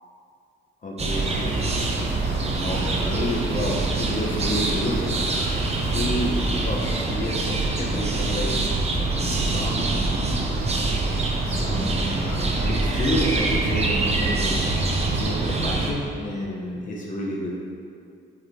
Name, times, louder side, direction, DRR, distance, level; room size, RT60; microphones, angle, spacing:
voice 1, 0.8-2.0 2.3-5.0 5.9-8.5 9.4-10.1 11.4-17.6, left 1 dB, 40° left, -3 dB, 1.0 m, -30 dB
sound 1, 1.0-15.9, right 2 dB, 30° right, 0.8 m, -24 dB
sound 2, 1.1-7.1, right 1 dB, 70° right, 1.5 m, -41 dB
7.7 x 4.1 x 3.2 m, 2.4 s
cardioid pair, 90°, 20 cm